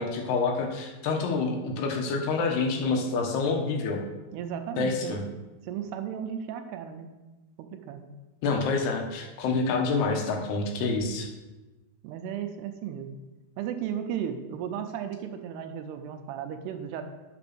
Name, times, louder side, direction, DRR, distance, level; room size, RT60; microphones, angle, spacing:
voice 1, 0.0-4.0 4.8-5.2 8.4-11.3, left 4 dB, 75° left, 2 dB, 3.0 m, -27 dB
voice 2, 4.3-5.2 5.7-7.1 7.6-8.0 12.0-13.2 13.6-17.0, right 9 dB, 80° right, 7 dB, 2.7 m, -35 dB
8.9 x 6.1 x 5.9 m, 1.1 s
omnidirectional pair, 4.8 m